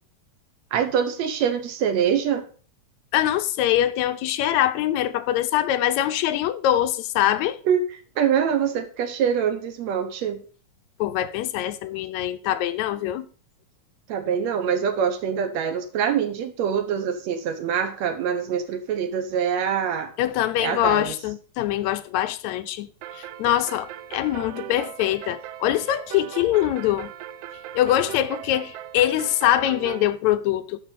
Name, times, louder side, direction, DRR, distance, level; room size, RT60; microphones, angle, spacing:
voice 1, 0.7-2.4 7.7-10.4 14.1-20.1 20.6-21.1, right 8 dB, 70° right, 2.3 m, -24 dB
voice 2, 3.1-7.6 11.0-13.3 20.2-22.9 23.1-27.1 27.7-30.8, left 12 dB, 80° left, 1.8 m, -23 dB
sound 1, 23.0-30.1, right 12 dB, 90° right, 1.4 m, -38 dB
12.5 x 5.3 x 4.1 m
omnidirectional pair, 3.3 m